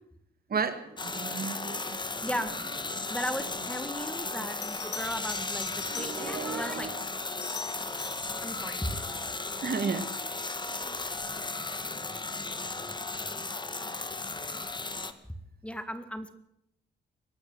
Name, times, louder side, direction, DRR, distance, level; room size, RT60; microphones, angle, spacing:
voice 1, 0.5-1.8 4.3-4.4 5.9-6.9 9.6-10.1, right 5 dB, 55° right, 10 dB, 2.1 m, -33 dB
sound 1, 1.0-15.1, left 3 dB, 25° left, 1.7 m, -35 dB
voice 2, 2.2-2.6 3.1-7.0 8.3-9.0 15.6-16.3, equal, 5° left, 10 dB, 1.9 m, -36 dB
Bell, 4.0-4.1 4.6-6.6 7.2-8.3 11.0-11.3, left 5 dB, 70° left, 3.4 m, -43 dB
23.0 x 12.5 x 9.7 m, 0.79 s
cardioid pair, 85°, 18 cm